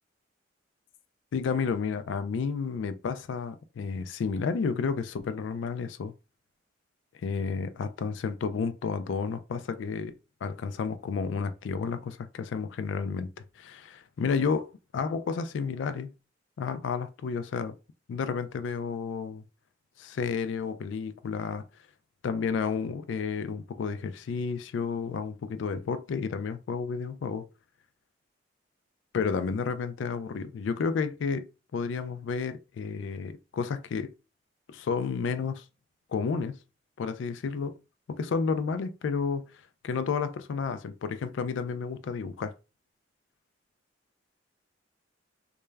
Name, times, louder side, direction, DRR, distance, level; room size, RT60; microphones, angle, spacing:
voice 1, 1.3-6.1 7.2-16.1 16.6-17.8 18.1-19.4 20.0-21.7 22.2-27.5 29.1-34.1 34.7-35.6 36.1-36.6 37.0-37.8 38.1-39.5 39.8-42.5, left 5 dB, 75° left, 0.3 m, -31 dB
2.2 x 2.2 x 3.2 m
head